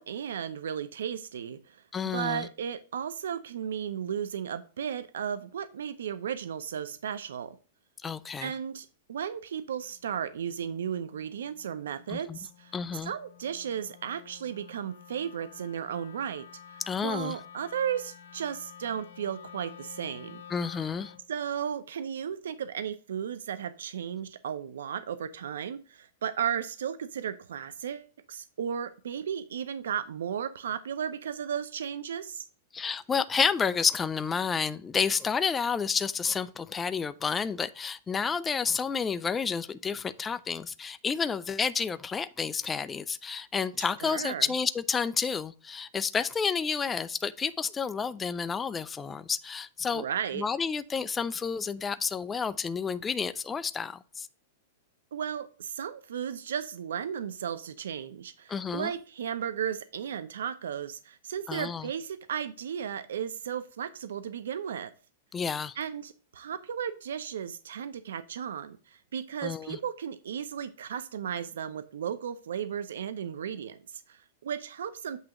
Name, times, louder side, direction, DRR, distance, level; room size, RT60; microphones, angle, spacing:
voice 1, 0.0-1.8 2.1-7.6 8.4-12.7 13.0-20.4 21.3-32.5 43.8-44.5 49.9-50.4 55.1-64.9 65.8-75.2, right 8 dB, 90° right, 0.6 m, -35 dB
voice 2, 1.9-2.5 8.0-8.5 12.1-12.4 12.7-13.1 16.9-17.4 20.5-21.1 32.7-50.0 50.4-54.3 58.5-58.9 61.5-61.9 65.3-65.8 69.4-69.8, left 6 dB, 15° left, 0.4 m, -30 dB
Wind instrument woodwind instrument, 9.7-21.3, left 8 dB, 85° left, 0.9 m, -51 dB
8.2 x 2.9 x 6.2 m
supercardioid pair, 150°, 0 cm